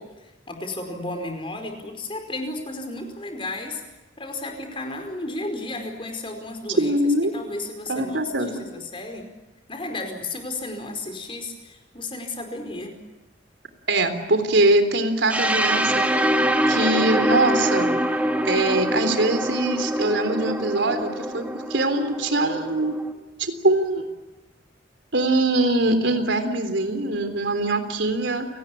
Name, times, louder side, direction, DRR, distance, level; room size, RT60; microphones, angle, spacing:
voice 1, 0.0-3.8 4.2-6.9 7.3-9.3 9.7-13.0, left 2 dB, 30° left, 5 dB, 4.9 m, -33 dB
voice 2, 6.8-7.3 7.9-8.5 13.9-16.0 16.7-17.9 18.5-23.0 23.4-24.1 25.1-28.5, right 2 dB, 85° right, 8 dB, 3.6 m, -22 dB
sound 1, 15.3-23.1, equal, 10° right, 1.8 m, -24 dB
29.5 x 19.0 x 8.7 m, 1.1 s
head